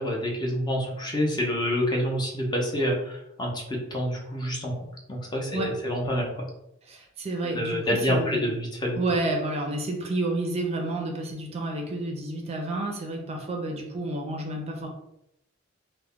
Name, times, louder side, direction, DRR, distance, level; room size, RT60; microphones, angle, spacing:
voice 1, 0.0-6.5 7.5-9.0, equal, 20° left, -1 dB, 0.5 m, -27 dB
voice 2, 6.9-8.5 8.9-14.9, right 2 dB, 30° right, 1 dB, 0.5 m, -30 dB
2.3 x 2.1 x 3.5 m, 0.82 s
head